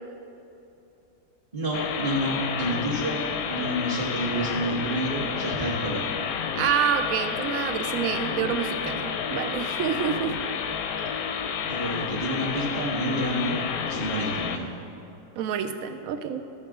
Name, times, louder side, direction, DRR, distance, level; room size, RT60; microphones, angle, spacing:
voice 1, 1.5-6.1 11.7-14.7, right 1 dB, 25° right, -7 dB, 1.2 m, -29 dB
sound 1, 1.7-14.6, left 7 dB, 70° left, 0.9 m, -30 dB
voice 2, 6.5-10.3 15.4-16.5, right 8 dB, 70° right, 8 dB, 0.8 m, -27 dB
13.5 x 6.5 x 3.6 m, 2.9 s
omnidirectional pair, 1.9 m